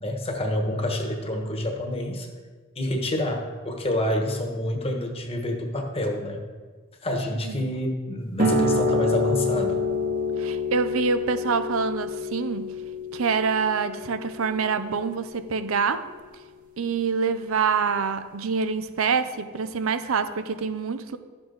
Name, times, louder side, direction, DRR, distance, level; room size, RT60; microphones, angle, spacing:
voice 1, 0.0-2.3 2.7-6.4 7.0-9.8, left 1 dB, 30° left, 3 dB, 1.2 m, -28 dB
sound 1, 8.4-15.5, left 2 dB, 40° right, 1.2 m, -28 dB
voice 2, 10.4-12.7 13.1-16.1 16.8-21.2, right 5 dB, 80° right, 11 dB, 0.6 m, -26 dB
12.0 x 6.8 x 3.9 m, 1.5 s
head